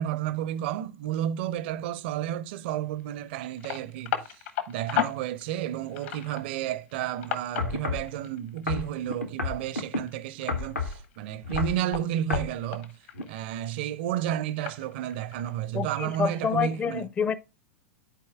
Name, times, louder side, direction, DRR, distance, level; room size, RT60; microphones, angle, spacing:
voice 1, 0.0-13.0 13.3-17.1, right 11 dB, 45° right, 0.5 m, -32 dB
sound 1, 2.7-3.0 3.3-9.0 9.4-11.2 11.5-13.7 14.3-15.6, left 10 dB, 50° left, 0.9 m, -35 dB
sound 2, 7.6-8.1 8.7-10.0 10.5-11.0 11.4-11.8 12.3-12.5 13.1-13.2, left 4 dB, 80° left, 1.0 m, -30 dB
voice 2, 15.7-17.4, left 7 dB, 15° left, 0.5 m, -28 dB
12.5 x 4.3 x 2.2 m
figure-of-eight pair, 95°, 8 cm